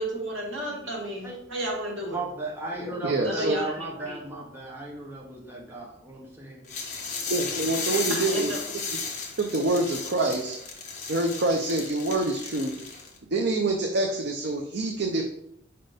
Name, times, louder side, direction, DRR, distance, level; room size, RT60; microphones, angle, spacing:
voice 1, 0.0-2.2 3.2-4.2 8.1-8.8, right 1 dB, 75° right, -2 dB, 2.0 m, -32 dB
voice 2, 2.1-6.6 7.1-7.7, right 2 dB, 10° right, -3 dB, 1.1 m, -36 dB
voice 3, 3.0-3.6 7.3-8.5 9.4-10.6 11.1-12.7 13.3-15.2, right 2 dB, 60° right, 2 dB, 0.6 m, -26 dB
sound 1, 6.7-13.2, left 4 dB, 40° left, 1.1 m, -34 dB
5.2 x 4.2 x 5.0 m, 0.76 s
head